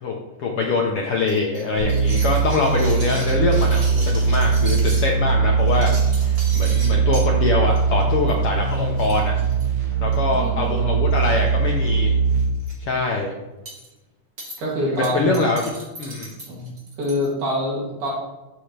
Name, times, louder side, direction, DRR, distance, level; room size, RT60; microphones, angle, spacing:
voice 1, 0.0-9.3 10.0-12.1 12.8-13.3 14.7-16.3, left 3 dB, 65° left, 0 dB, 1.5 m, -24 dB
sound 1, 1.3-5.1 5.6-7.3 7.7-8.0 8.3-8.4 8.7-8.8 9.0-10.3 11.1-11.5 11.8-11.9 12.3-12.7 13.7-13.9 14.4-14.6 15.0-17.3, right 1 dB, 30° right, 2.9 m, -37 dB
sound 2, 1.8-12.4, right 5 dB, 45° right, 1.6 m, -20 dB
voice 2, 10.3-11.0 14.6-15.3 16.5-16.7 17.0-18.1, equal, 75° right, -4 dB, 4.2 m, -25 dB
13.0 x 6.6 x 3.3 m, 1.1 s
omnidirectional pair, 3.6 m